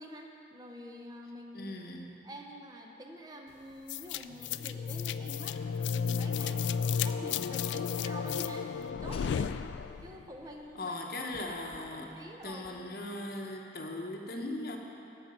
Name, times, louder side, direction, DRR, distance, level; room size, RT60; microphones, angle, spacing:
voice 1, 0.0-1.8 2.2-5.6 5.9-9.5 10.0-11.0 11.3-12.9, equal, 20° right, 1 dB, 0.7 m, -47 dB
voice 2, 1.5-2.1 10.7-12.1 12.4-14.8, left 2 dB, 55° left, 2 dB, 1.0 m, -39 dB
sound 1, 3.9-10.2, left 6 dB, 90° left, 0.3 m, -33 dB
sound 2, 7.9-9.5 10.4-10.5 11.1-12.8, left 3 dB, 35° left, 0.6 m, -55 dB
14.5 x 5.9 x 5.4 m, 2.9 s
head